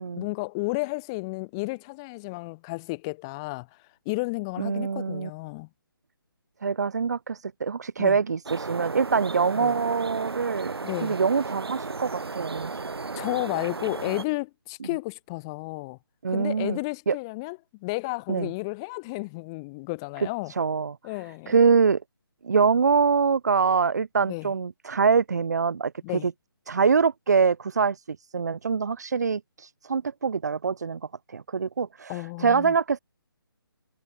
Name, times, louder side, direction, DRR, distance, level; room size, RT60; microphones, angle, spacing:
voice 1, 0.2-3.8 4.0-5.7 8.0-8.2 9.6-9.7 10.8-11.2 13.1-16.0 16.3-20.5 21.0-21.5 24.3-24.5 26.0-26.3 32.1-32.7, left 26 dB, 10° left, 1.3 m, -32 dB
voice 2, 4.6-5.3 6.6-12.8 16.2-16.8 17.1-17.2 18.3-18.5 20.6-21.0 21.5-22.0 22.4-26.3 26.7-31.0 31.3-33.0, right 5 dB, 45° right, 3.2 m, -24 dB
sound 1, 8.5-14.3, right 4 dB, 90° right, 3.2 m, -34 dB
hypercardioid pair, 175°, 13 cm